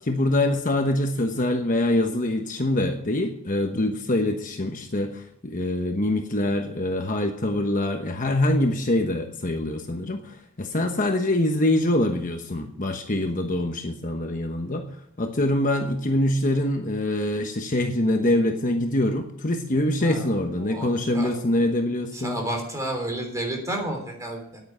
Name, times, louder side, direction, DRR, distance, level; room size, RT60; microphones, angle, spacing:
voice 1, 0.0-14.8 15.2-22.4, left 1 dB, 40° left, 4 dB, 1.1 m, -24 dB
voice 2, 20.6-21.3 22.1-24.6, right 1 dB, 15° right, 2 dB, 3.4 m, -31 dB
9.8 x 9.4 x 8.0 m, 0.70 s
head